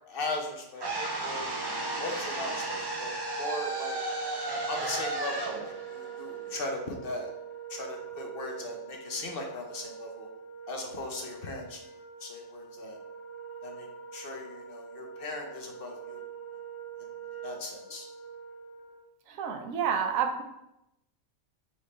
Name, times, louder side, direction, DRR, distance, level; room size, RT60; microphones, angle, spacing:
voice 1, 0.1-0.8 1.2-1.5 2.0-4.0 4.7-7.3 7.7-10.3 10.7-11.8 12.2-13.0 13.6-13.9 14.1-16.2 17.0-17.1 17.4-18.1, left 2 dB, 55° left, 2 dB, 0.7 m, -38 dB
sound 1, 0.8-6.9, right 2 dB, 35° right, 0.4 m, -34 dB
Wind instrument woodwind instrument, 0.9-19.0, right 7 dB, 5° right, 1.1 m, -43 dB
voice 2, 19.3-20.4, right 7 dB, 80° right, 4 dB, 1.0 m, -29 dB
4.1 x 3.5 x 3.8 m, 0.85 s
omnidirectional pair, 1.4 m